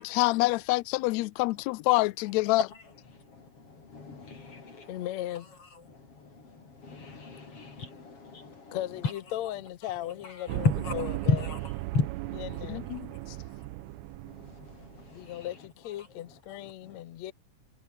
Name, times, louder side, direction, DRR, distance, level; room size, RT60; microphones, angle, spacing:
voice 1, 0.0-2.6 12.7-13.1, left 22 dB, 85° left, 1.6 m, -26 dB
voice 2, 2.3-9.3 9.8-12.6 12.9-17.0, left 4 dB, 45° left, 5.1 m, -36 dB
voice 3, 4.9-5.5 8.7-10.7 10.9-11.4 12.4-12.9 15.1-17.3, left 13 dB, 65° left, 2.1 m, -37 dB
sound 1, 10.5-15.3, right 20 dB, 90° right, 1.5 m, -37 dB
omnidirectional pair, 3.7 m